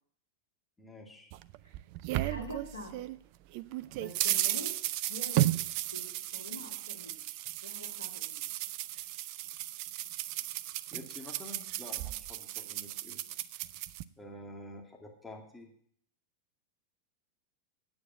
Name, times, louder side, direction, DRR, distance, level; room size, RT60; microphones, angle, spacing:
voice 1, 0.8-1.3 10.9-13.2 14.2-15.7, left 1 dB, 10° left, 0 dB, 2.5 m, -48 dB
sound 1, 1.3-3.2 3.5-14.0, right 15 dB, 45° right, 0.5 m, -34 dB
voice 2, 2.2-3.1 3.9-4.8 5.0-5.6 5.8-7.3 7.6-8.4, left 1 dB, 80° left, 2 dB, 2.2 m, -45 dB
9.4 x 8.5 x 7.4 m, 0.62 s
figure-of-eight pair, 90°, 0 cm